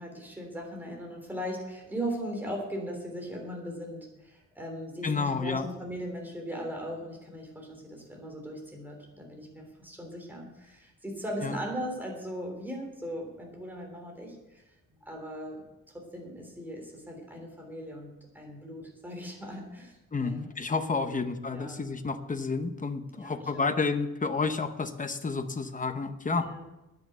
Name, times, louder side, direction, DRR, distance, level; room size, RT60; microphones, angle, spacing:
voice 1, 0.0-14.6 15.0-15.6 15.9-20.4 21.0-21.2 21.5-21.8 23.1-23.7 26.4-26.6, equal, 5° right, 0 dB, 3.2 m, -38 dB
voice 2, 5.0-5.7 11.4-11.6 20.1-26.5, left 4 dB, 25° left, 9 dB, 0.9 m, -30 dB
10.0 x 9.4 x 8.0 m, 0.97 s
wide cardioid pair, 150°, 33 cm